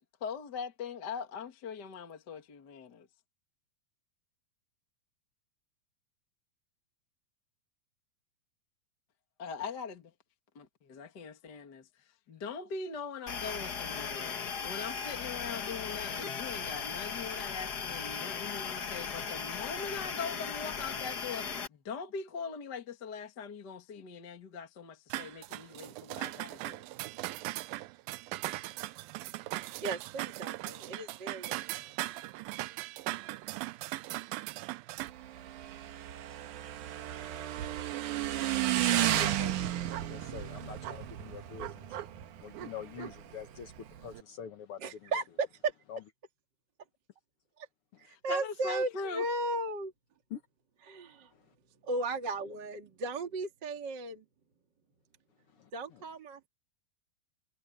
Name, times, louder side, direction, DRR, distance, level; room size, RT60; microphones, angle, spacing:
voice 1, 0.2-3.1 9.4-10.1 10.6-11.9 12.3-26.9 48.1-49.2, left 5 dB, 35° left, 2.1 m, -41 dB
sound 1, 13.3-21.7, left 6 dB, 85° left, 0.8 m, -37 dB
sound 2, 25.1-35.1, right 18 dB, 80° right, 2.4 m, -39 dB
voice 2, 29.8-31.9 44.8-45.7 47.6-47.7 48.0-49.9 50.9-51.3 51.8-54.2 55.7-56.5, right 2 dB, 35° right, 2.0 m, -35 dB
Motorcycle / Engine, 35.0-44.2, right 13 dB, 65° right, 2.4 m, -34 dB
voice 3, 38.9-39.8 40.1-42.0 42.4-45.1 45.9-46.0 50.3-50.4 51.3-51.4 55.6-55.7, left 8 dB, 65° left, 1.3 m, -45 dB
omnidirectional pair, 4.2 m